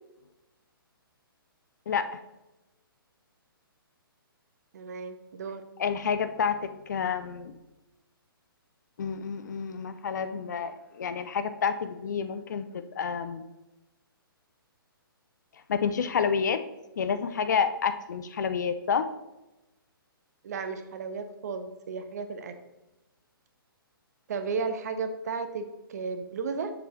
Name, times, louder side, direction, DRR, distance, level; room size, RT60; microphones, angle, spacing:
voice 1, 1.9-2.2 5.8-7.6 9.0-13.4 15.7-16.6 17.0-19.1, left 6 dB, 50° left, 11 dB, 0.5 m, -29 dB
voice 2, 4.7-5.6 20.4-22.5 24.3-26.7, right 5 dB, 45° right, 9 dB, 0.7 m, -34 dB
6.8 x 5.3 x 3.1 m, 0.99 s
figure-of-eight pair, 130°, 12 cm